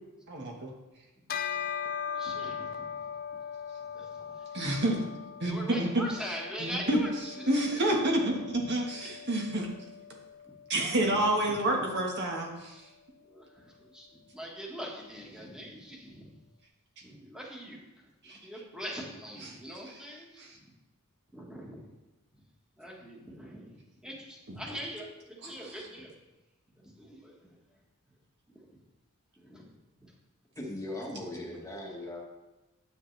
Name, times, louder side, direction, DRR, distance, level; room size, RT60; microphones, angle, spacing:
voice 1, 0.3-0.7 4.5-5.0 5.4-6.0 6.6-7.0 7.5-9.7 10.7-12.7 18.2-18.4 24.5-24.6, right 1 dB, 50° right, 0 dB, 1.5 m, -28 dB
Bell, 1.3-11.0, left 7 dB, 40° left, 0.4 m, -40 dB
voice 2, 2.1-3.4 3.9-4.5 5.5-7.5 8.9-9.1 11.0-11.2 11.5-11.6 12.7-12.9 13.2-16.4 17.0-20.6 21.3-21.8 22.8-26.2 26.7-27.6 28.5-28.8 29.4-29.7 30.0-30.1, equal, 5° right, -2 dB, 1.5 m, -43 dB
voice 3, 30.6-32.2, left 1 dB, 15° left, -1 dB, 1.3 m, -39 dB
9.7 x 7.8 x 3.3 m, 1.1 s
head